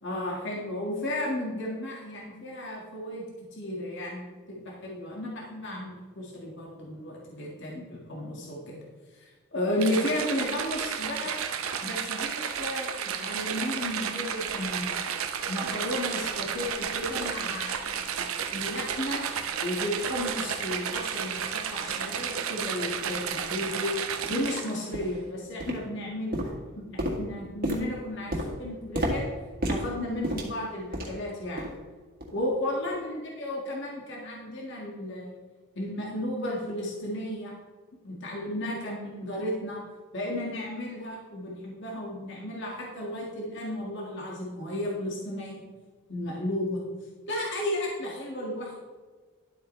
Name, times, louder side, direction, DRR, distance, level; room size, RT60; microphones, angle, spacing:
voice 1, 0.0-3.2 3.5-8.8 9.1-11.4 11.8-15.0 15.5-19.2 19.6-23.9 24.3-29.2 29.7-31.7 32.3-35.3 35.8-37.6 38.0-39.8 40.1-45.6 46.1-46.8 47.3-48.7, left 1 dB, 55° left, -3 dB, 1.8 m, -33 dB
sound 1, 9.8-24.9, right 7 dB, 70° right, 0.7 m, -32 dB
sound 2, 22.9-23.0 23.6-23.7 24.2-24.4 24.9-25.2 25.6-26.0 26.3-31.3 31.6-31.8 32.2-32.4 32.9-33.0, equal, 40° right, 1.7 m, -32 dB
11.5 x 8.1 x 3.2 m, 1.4 s
head